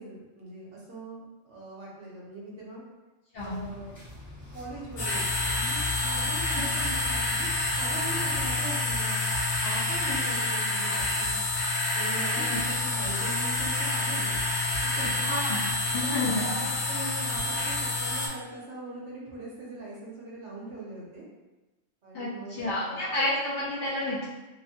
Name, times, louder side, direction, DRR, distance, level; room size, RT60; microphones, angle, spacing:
voice 1, 0.0-2.8 3.4-3.9 4.5-9.2 9.6-11.3 11.9-14.4 14.8-15.2 15.8-21.3 22.0-23.1 23.9-24.0, right 2 dB, 65° right, -5 dB, 1.0 m, -41 dB
sound 1, 3.3-8.6, left 2 dB, 25° left, 0.4 m, -41 dB
sound 2, 5.0-18.3, left 2 dB, 80° left, 1.1 m, -28 dB
voice 2, 15.2-15.6 15.9-16.4 22.1-24.3, left 2 dB, 60° left, -7 dB, 0.7 m, -30 dB
2.8 x 2.1 x 2.7 m, 1.1 s
omnidirectional pair, 1.3 m